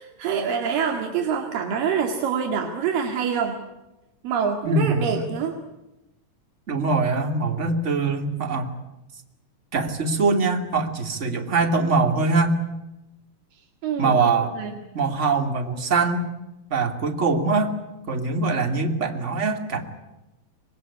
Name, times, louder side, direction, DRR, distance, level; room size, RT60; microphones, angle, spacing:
voice 1, 0.0-3.6 4.2-5.6 13.8-14.3 14.6-14.7, right 7 dB, 85° right, 3 dB, 3.8 m, -26 dB
voice 2, 4.6-5.3 6.7-8.7 9.7-12.6 14.0-14.6 14.9-16.3 16.7-17.8 18.1-19.8, right 3 dB, 25° right, 5 dB, 2.4 m, -23 dB
25.5 x 20.0 x 9.8 m, 0.98 s
omnidirectional pair, 3.9 m